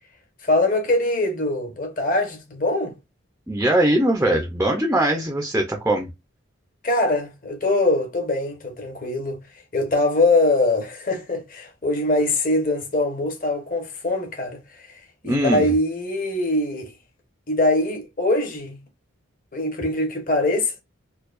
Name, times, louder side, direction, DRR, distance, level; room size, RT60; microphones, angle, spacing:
voice 1, 0.4-2.9 6.8-9.4 9.7-14.9 15.2-16.9 17.5-18.8 19.5-20.7, left 2 dB, 40° left, 1.1 m, -22 dB
voice 2, 3.5-6.1 15.2-15.7, right 1 dB, 10° right, 0.5 m, -21 dB
4.5 x 2.3 x 2.5 m
head